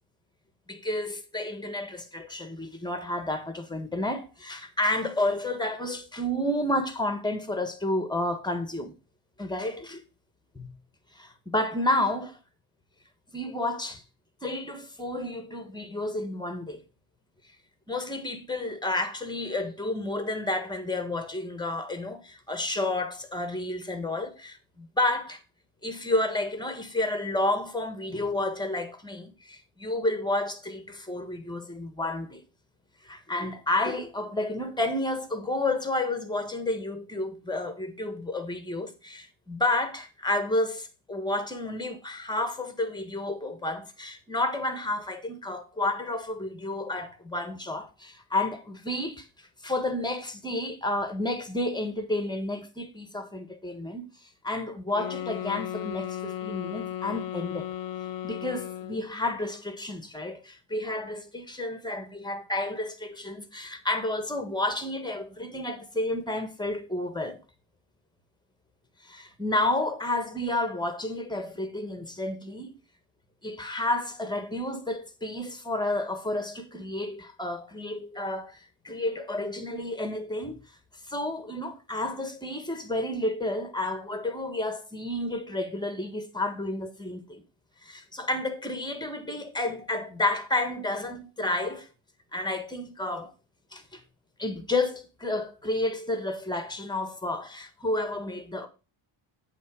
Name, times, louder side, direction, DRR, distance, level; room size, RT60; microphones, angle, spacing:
voice 1, 0.7-8.9 9.4-10.0 10.5-10.7 11.1-12.4 13.3-14.0 14.4-16.8 17.9-25.4 25.8-32.4 33.0-49.3 49.6-54.1 54.4-57.7 58.2-67.4 69.0-72.8 73.4-80.6 81.1-87.4 87.8-91.9 92.3-93.3 93.7-94.0 94.4-98.7, left 2 dB, 10° left, 1.5 m, -31 dB
sound 1, 54.9-59.1, left 11 dB, 45° left, 0.6 m, -35 dB
8.4 x 3.7 x 6.1 m
cardioid pair, 90°, 49 cm